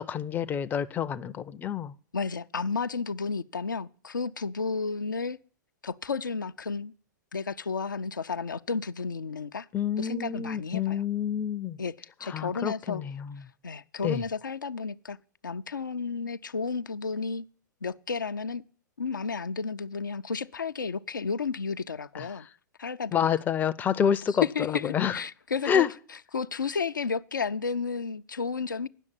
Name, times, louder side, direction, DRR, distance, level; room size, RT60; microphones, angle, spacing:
voice 1, 0.0-1.9 9.7-11.8 12.2-13.4 14.0-14.2 22.1-22.5 23.1-25.2 25.6-25.9, left 8 dB, 15° left, 0.5 m, -28 dB
voice 2, 2.1-5.4 5.8-6.9 7.3-9.7 10.0-11.0 11.8-13.0 13.6-15.2 15.4-17.5 17.8-18.6 19.0-22.5 22.8-23.2 24.4-25.9 26.3-28.9, left 5 dB, 80° left, 0.4 m, -32 dB
9.9 x 6.4 x 8.9 m
figure-of-eight pair, 105°, 10 cm